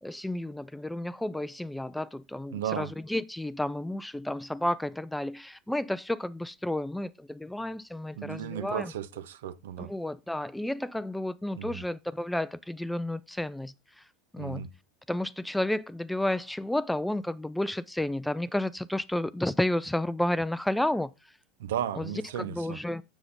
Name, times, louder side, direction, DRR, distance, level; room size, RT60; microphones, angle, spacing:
voice 1, 0.0-8.9 9.8-14.0 14.3-14.7 15.1-21.1 22.0-22.1 22.4-23.0, left 1 dB, 5° left, 0.4 m, -31 dB
voice 2, 2.5-2.9 8.1-9.9 11.5-11.8 14.4-14.7 21.6-22.8, right 10 dB, 70° right, 0.7 m, -35 dB
7.7 x 6.9 x 3.8 m
figure-of-eight pair, 80°, 0 cm